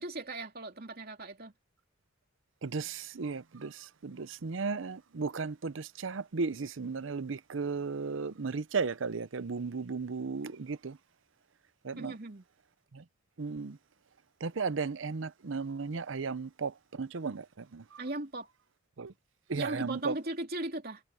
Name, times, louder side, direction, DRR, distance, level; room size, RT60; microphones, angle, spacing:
voice 1, 0.0-1.5 12.0-12.4 18.0-18.5 19.6-21.0, right 2 dB, 50° right, 2.9 m, -38 dB
voice 2, 2.6-11.0 11.8-12.1 12.9-13.0 13.4-13.8 14.4-17.8 19.0-19.1 19.5-20.1, right 4 dB, 75° right, 0.7 m, -35 dB
head